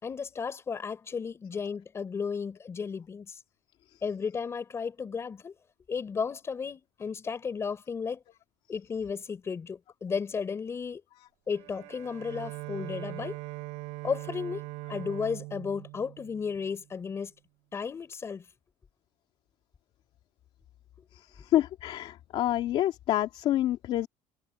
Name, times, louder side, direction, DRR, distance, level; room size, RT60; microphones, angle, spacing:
voice 1, 0.0-3.4 4.0-5.5 5.9-8.2 8.7-11.0 11.5-13.4 14.0-14.6 14.9-17.3 17.7-18.4, left 6 dB, 25° left, 4.6 m, -34 dB
Bowed string instrument, 11.5-17.0, right 24 dB, 85° right, 6.0 m, -41 dB
voice 2, 21.4-24.1, left 13 dB, 50° left, 2.4 m, -27 dB
cardioid pair, 155°, 12 cm